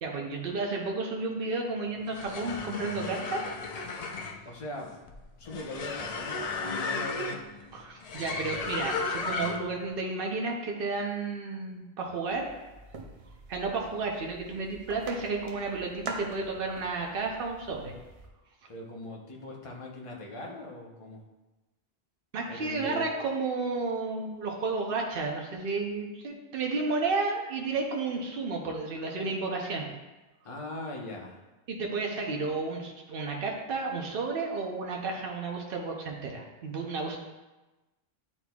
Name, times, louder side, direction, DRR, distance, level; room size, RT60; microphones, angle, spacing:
voice 1, 0.0-3.4 7.7-12.5 13.5-17.9 22.3-29.9 31.7-37.2, right 3 dB, 65° right, 0 dB, 1.0 m, -32 dB
sound 1, 2.0-9.8, left 4 dB, 50° left, 0.5 m, -35 dB
voice 2, 4.4-4.9 5.4-7.4 18.7-21.2 22.5-23.0 30.4-31.4, left 1 dB, 35° left, -2 dB, 0.9 m, -40 dB
sound 2, 12.2-18.3, right 2 dB, 40° right, 0.6 m, -45 dB
9.7 x 4.2 x 2.3 m, 1.1 s
omnidirectional pair, 1.0 m